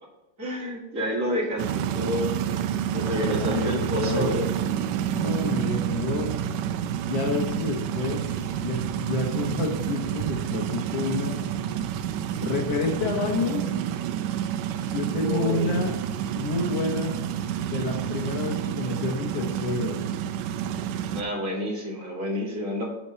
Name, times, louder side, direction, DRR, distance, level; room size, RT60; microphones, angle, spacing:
voice 1, 0.4-2.4 2.9-4.5 15.1-15.7 21.1-22.8, equal, 30° right, -2 dB, 1.7 m, -29 dB
sound 1, 1.6-21.2, right 10 dB, 80° right, 1.6 m, -29 dB
voice 2, 3.2-4.3 5.2-6.3 7.1-8.2 8.6-11.3 12.4-13.7 14.9-16.0 16.4-17.2 17.7-20.0, left 3 dB, 65° left, -1 dB, 1.8 m, -29 dB
7.0 x 4.4 x 6.6 m, 1.1 s
omnidirectional pair, 3.5 m